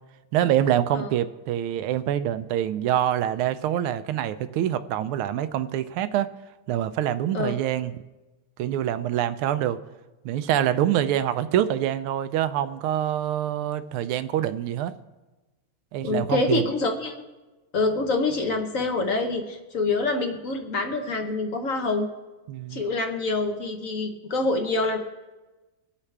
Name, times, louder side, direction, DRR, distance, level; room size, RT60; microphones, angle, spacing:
voice 1, 0.3-6.3 6.7-7.9 8.6-9.8 10.2-14.9 15.9-16.6 22.5-22.8, right 11 dB, 80° right, 12 dB, 1.4 m, -25 dB
voice 2, 16.0-17.2 17.7-22.1 22.7-25.0, left 3 dB, 50° left, 5 dB, 1.1 m, -26 dB
24.0 x 8.4 x 3.3 m, 1.2 s
omnidirectional pair, 2.4 m